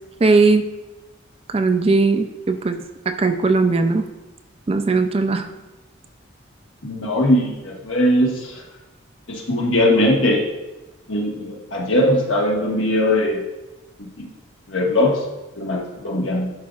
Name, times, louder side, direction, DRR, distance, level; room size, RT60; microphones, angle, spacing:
voice 1, 0.2-0.6 1.5-2.8 3.1-4.0 4.7-5.5, right 3 dB, 30° right, 8 dB, 0.3 m, -18 dB
voice 2, 6.8-8.6 9.3-10.4 11.1-13.4 14.0-14.2 14.7-15.2 15.6-16.5, left 1 dB, 70° left, -1 dB, 1.3 m, -20 dB
11.0 x 5.2 x 2.4 m, 1.1 s
head